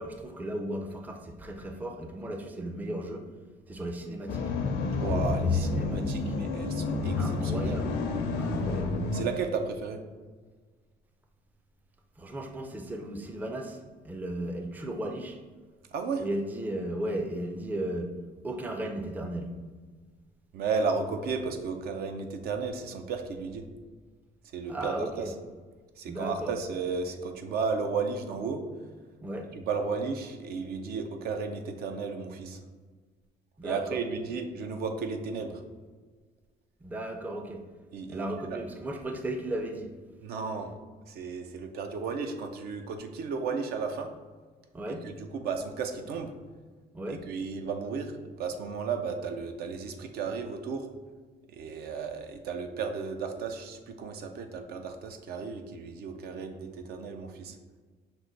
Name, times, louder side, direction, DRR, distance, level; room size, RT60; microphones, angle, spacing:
voice 1, 0.0-3.3 3.7-4.5 5.0-6.4 7.2-8.0 8.4-9.0 12.2-15.4 16.2-18.1 18.4-19.5 24.7-25.3 26.1-26.6 29.2-29.5 33.6-34.0 36.8-37.7 38.1-39.9 44.7-45.1 46.9-47.3, right 1 dB, 10° right, 5 dB, 0.4 m, -35 dB
sound 1, 4.3-9.3, left 3 dB, 75° left, 0.6 m, -29 dB
voice 2, 5.0-7.8 9.1-10.0 15.9-16.3 20.5-23.6 24.5-25.3 26.0-28.6 29.5-32.6 33.6-35.6 37.9-38.6 40.2-40.7 41.1-44.1 44.9-46.3 47.1-50.9 51.5-57.6, right 5 dB, 70° right, 6 dB, 0.5 m, -34 dB
5.9 x 2.2 x 3.9 m, 1.4 s
cardioid pair, 110°, 17 cm